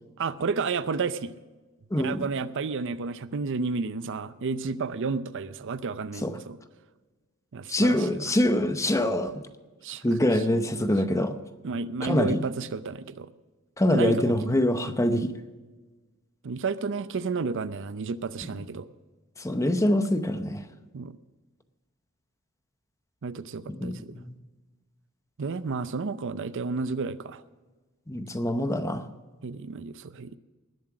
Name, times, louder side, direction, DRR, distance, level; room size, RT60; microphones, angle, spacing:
voice 1, 0.2-1.3 2.0-6.6 7.5-8.2 9.8-10.4 11.6-13.3 13.9-14.5 16.4-18.9 20.9-21.2 23.2-24.2 25.4-27.4 29.4-30.4, right 4 dB, 60° right, 14 dB, 0.5 m, -31 dB
voice 2, 1.9-2.2 6.2-6.3 7.7-9.4 10.0-11.4 12.0-12.4 13.8-15.3 19.4-20.6 23.7-24.3 28.1-29.0, left 1 dB, 15° left, 9 dB, 0.8 m, -25 dB
19.5 x 7.5 x 6.0 m, 1.3 s
head